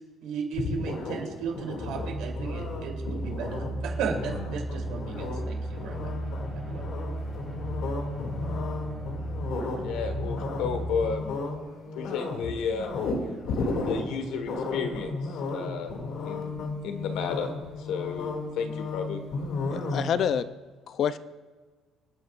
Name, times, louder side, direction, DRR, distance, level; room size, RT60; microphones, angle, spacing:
voice 1, 0.2-6.1 6.5-6.9, right 6 dB, 75° right, 0 dB, 3.2 m, -35 dB
sound 1, 0.5-20.4, left 3 dB, 65° left, 2.4 m, -34 dB
sound 2, 1.7-11.1, right 1 dB, 20° left, 4.3 m, -35 dB
voice 2, 9.8-11.4 11.9-12.9 13.6-15.9 16.2-17.5 17.8-19.2, left 6 dB, 80° left, 7 dB, 1.5 m, -33 dB
voice 3, 19.7-20.5 20.9-21.2, left 8 dB, 45° left, 13 dB, 0.5 m, -27 dB
27.5 x 9.8 x 2.5 m, 1.4 s
cardioid pair, 160°, 0 cm